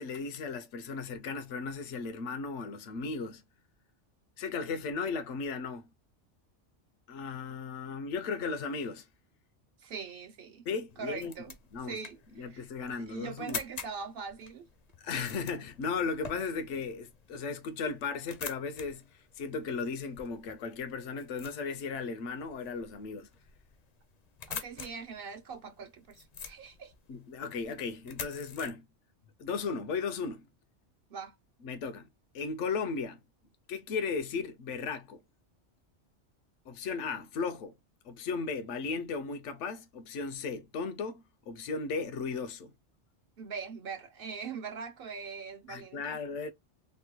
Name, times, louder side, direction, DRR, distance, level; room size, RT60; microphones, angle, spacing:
voice 1, 0.0-3.4 4.4-5.8 7.1-9.1 10.7-11.3 11.7-12.0 12.4-13.6 15.0-19.0 19.4-23.3 27.1-28.9 29.4-30.5 31.6-32.1 32.3-33.2 33.7-35.2 36.7-37.7 38.0-42.7 45.7-46.5, left 4 dB, 80° left, 1.0 m, -36 dB
voice 2, 9.8-10.6 11.0-11.5 11.9-14.7 24.5-26.9 31.1-31.4 43.4-46.2, right 5 dB, 60° right, 0.7 m, -42 dB
sound 1, 10.9-28.7, left 6 dB, 50° left, 0.5 m, -47 dB
3.1 x 2.2 x 2.8 m
omnidirectional pair, 1.2 m